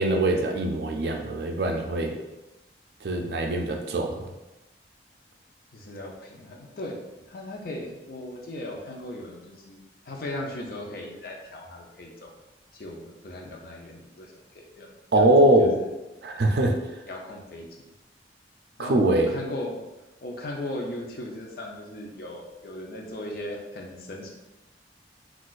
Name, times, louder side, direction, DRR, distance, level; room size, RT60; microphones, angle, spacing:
voice 1, 0.0-2.1 3.0-4.2 15.1-15.8 16.2-16.7 18.8-19.3, right 1 dB, 60° right, 3 dB, 0.4 m, -22 dB
voice 2, 5.7-7.0 7.3-12.3 12.7-14.9 15.1-15.3 15.6-15.9 17.1-17.8 18.8-19.8 20.2-24.3, left 1 dB, 55° left, 0 dB, 0.5 m, -37 dB
3.8 x 2.4 x 2.4 m, 1.0 s
head